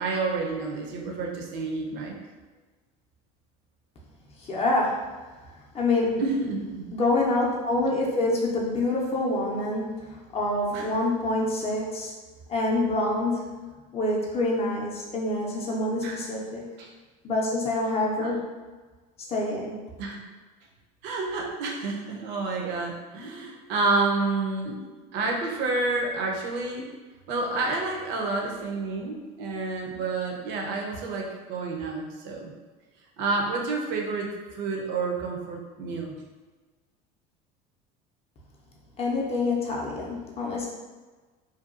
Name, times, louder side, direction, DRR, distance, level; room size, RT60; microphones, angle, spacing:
voice 1, 0.0-2.2 6.2-6.8 10.7-10.9 16.0-16.2 16.8-16.9 18.2-18.4 20.0-20.2 21.0-24.8 25.1-26.9 27.3-32.5 33.2-36.2, right 3 dB, 65° right, 0 dB, 0.6 m, -29 dB
voice 2, 4.4-5.0 5.7-6.2 6.9-12.1 12.5-13.7 13.9-16.6 17.2-18.5 19.3-19.8 39.0-40.7, left 2 dB, 30° left, -3 dB, 0.5 m, -26 dB
2.7 x 2.2 x 2.4 m, 1.3 s
supercardioid pair, 120°, 20 cm